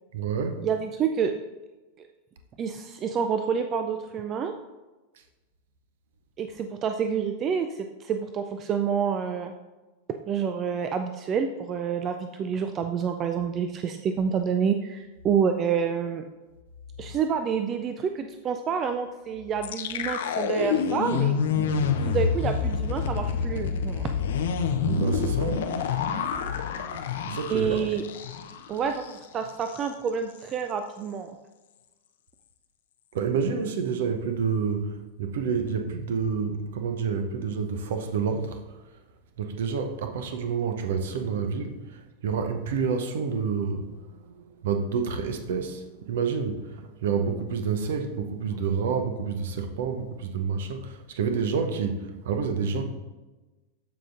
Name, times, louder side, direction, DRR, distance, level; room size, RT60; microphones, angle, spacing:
voice 1, 0.1-0.7 17.1-17.2 24.8-25.8 27.3-27.9 33.1-38.6 39.4-52.8, right 5 dB, 60° right, 6 dB, 0.8 m, -29 dB
voice 2, 0.6-1.3 2.0-2.1 2.6-4.5 6.4-9.5 10.1-16.2 17.0-21.4 22.0-24.1 27.5-28.0 28.7-31.3, right 7 dB, 30° right, 7 dB, 0.4 m, -28 dB
sound 1, 19.6-28.7 28.9-29.1 29.5-29.9, left 6 dB, 60° left, 0.6 m, -27 dB
13.5 x 5.1 x 2.5 m, 1.2 s
figure-of-eight pair, 90°, 0 cm